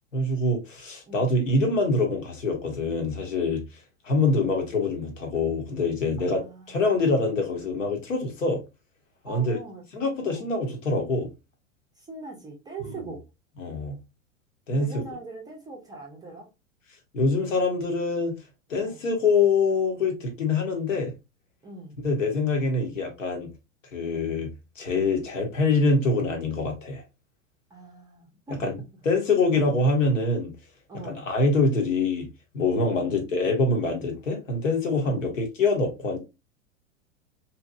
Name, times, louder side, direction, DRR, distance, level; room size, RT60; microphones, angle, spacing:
voice 1, 0.1-3.6 4.0-6.4 6.7-8.6 9.2-9.6 9.9-11.3 13.6-14.0 14.7-15.0 17.1-18.3 18.7-21.1 22.0-23.5 23.9-24.5 24.8-27.0 28.5-28.8 29.0-30.5 31.0-32.3 32.5-36.2, left 3 dB, 70° left, 1.2 m, -25 dB
voice 2, 6.2-7.2 9.3-9.9 10.3-10.5 12.0-13.2 14.7-16.5 18.8-19.1 21.6-22.0 27.7-28.7 29.5-29.7 30.9-31.2 32.8-33.1 35.0-35.2, right 3 dB, 10° right, 0.5 m, -42 dB
2.8 x 2.5 x 2.5 m
figure-of-eight pair, 95°, 39 cm